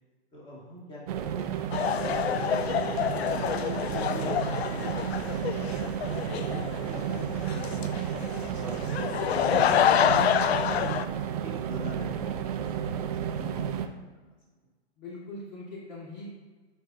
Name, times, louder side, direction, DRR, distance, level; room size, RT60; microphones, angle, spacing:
voice 1, 0.3-3.4 4.1-6.4 6.9-10.3 10.8-13.2 13.5-13.7 14.0-14.1, left 1 dB, 15° left, -5 dB, 1.9 m, -44 dB
sound 1, 1.1-13.9, right 9 dB, 35° right, 0.5 m, -32 dB
sound 2, 1.7-11.1, left 9 dB, 70° left, 0.5 m, -27 dB
voice 2, 10.5-10.9 13.2-13.9 15.0-16.3, left 2 dB, 45° left, -4 dB, 1.6 m, -43 dB
9.2 x 4.4 x 2.6 m, 1.3 s
hypercardioid pair, 125°, 32 cm